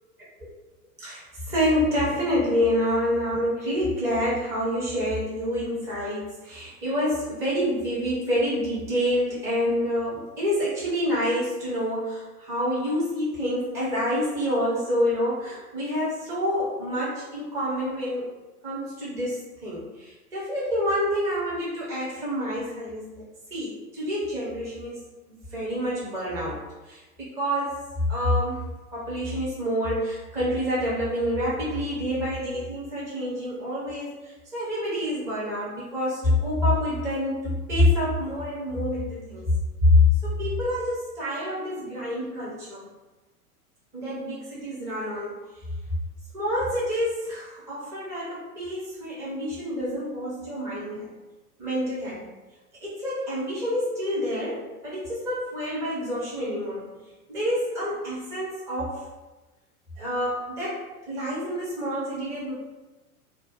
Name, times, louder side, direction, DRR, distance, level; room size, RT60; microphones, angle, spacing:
voice 1, 1.0-18.3 18.6-23.2 23.5-26.6 26.9-27.8 28.1-39.5 39.8-42.9 43.9-45.3 46.3-51.1 51.6-52.3 52.8-56.9 57.3-59.0 60.0-62.5, left 1 dB, 5° right, -8 dB, 0.4 m, -27 dB
2.5 x 2.1 x 3.8 m, 1.1 s
figure-of-eight pair, 95°, 46 cm